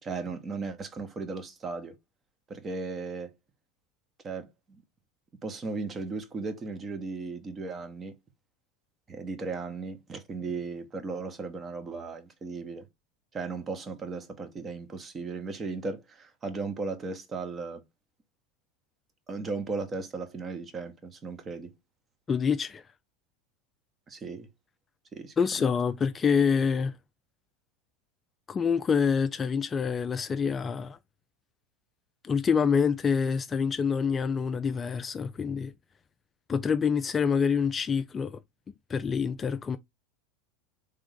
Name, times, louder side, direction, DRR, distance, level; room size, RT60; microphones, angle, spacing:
voice 1, 0.0-1.9 2.5-3.3 4.2-4.8 5.4-8.1 9.1-12.8 13.3-17.8 19.3-21.7 24.1-24.5 25.1-25.6, right 4 dB, 25° right, 1.2 m, -36 dB
voice 2, 22.3-22.8 25.4-26.9 28.5-31.0 32.2-35.7 36.5-38.4 38.9-39.8, left 6 dB, 25° left, 0.4 m, -26 dB
3.7 x 3.5 x 3.4 m
hypercardioid pair, 85°, 0 cm